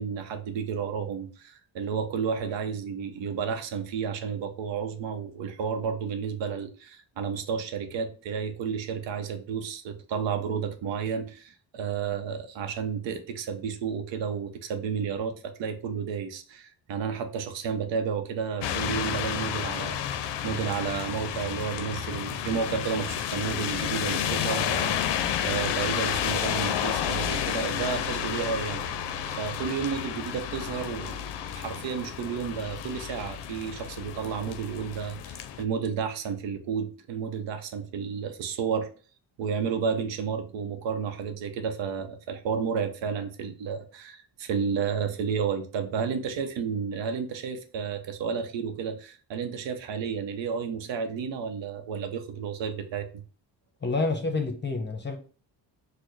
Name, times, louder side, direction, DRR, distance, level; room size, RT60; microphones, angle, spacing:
voice 1, 0.0-25.1 25.4-29.0 29.4-38.9 39.4-53.2, right 6 dB, 75° right, 0.7 m, -32 dB
sound 1, 18.6-35.6, left 9 dB, 65° left, 0.5 m, -31 dB
voice 2, 53.8-55.2, left 3 dB, 25° left, 0.8 m, -28 dB
4.2 x 2.1 x 3.1 m
cardioid pair, 70°, 45 cm